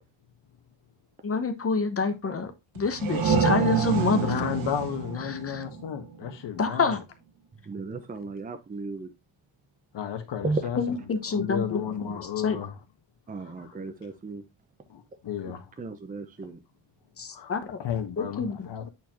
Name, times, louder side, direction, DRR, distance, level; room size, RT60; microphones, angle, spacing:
voice 1, 1.2-4.5 5.3-5.6 6.6-7.0 10.8-12.2 12.4-12.6 17.2-17.6 18.2-18.7, left 4 dB, 30° left, 0.9 m, -27 dB
sound 1, 2.7-6.3, right 6 dB, 85° right, 1.7 m, -28 dB
voice 2, 4.2-7.0 9.9-11.0 11.3-12.8 13.6-13.7 14.9-15.6 17.3-18.9, left 9 dB, 60° left, 1.4 m, -33 dB
voice 3, 7.7-9.1 10.4-10.6 13.3-14.4 15.8-16.6, right 3 dB, 20° right, 0.6 m, -34 dB
8.4 x 4.4 x 2.9 m
cardioid pair, 140°, 47 cm